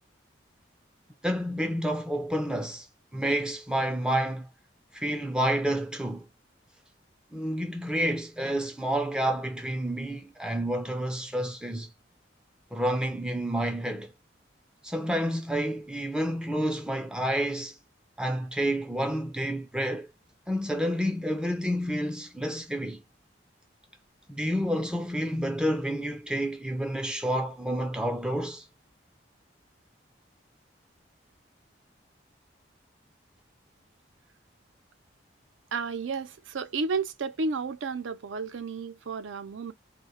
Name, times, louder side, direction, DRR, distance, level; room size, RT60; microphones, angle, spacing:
voice 1, 1.2-2.9 3.1-4.5 4.9-6.3 7.3-11.9 12.7-14.1 14.8-17.8 18.2-20.1 20.5-23.0 24.3-28.7, equal, 5° right, 0.3 m, -29 dB
voice 2, 35.7-39.7, right 4 dB, 85° right, 0.5 m, -32 dB
2.1 x 2.0 x 2.9 m
head